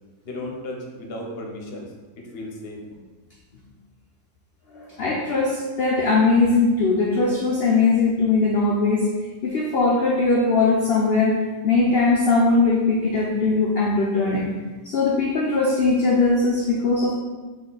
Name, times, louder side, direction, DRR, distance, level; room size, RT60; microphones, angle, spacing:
voice 1, 0.2-2.8, left 1 dB, 50° left, 0 dB, 0.8 m, -35 dB
voice 2, 4.7-9.1 9.4-14.5 14.8-17.1, left 3 dB, 85° left, -2 dB, 0.5 m, -20 dB
4.2 x 2.9 x 3.8 m, 1.3 s
omnidirectional pair, 1.6 m